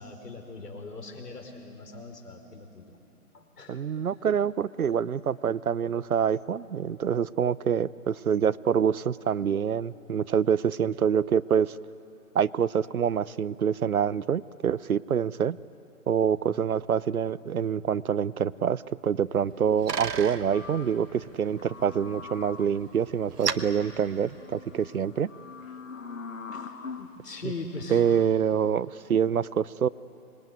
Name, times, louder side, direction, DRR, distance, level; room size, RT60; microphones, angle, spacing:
voice 1, 0.0-3.0 3.3-3.8 26.5-28.0, left 3 dB, 85° left, 5 dB, 4.8 m, -41 dB
voice 2, 3.7-11.7 12.3-15.6 16.1-25.3 27.9-29.9, right 8 dB, 70° right, 20 dB, 0.7 m, -26 dB
Bicycle, 19.2-24.9, right 6 dB, 85° right, 1.4 m, -38 dB
sound 1, 20.5-27.1 27.8-28.2, left 5 dB, 55° left, 1.4 m, -44 dB
25.5 x 21.5 x 9.3 m, 2.8 s
hypercardioid pair, 180°, 46 cm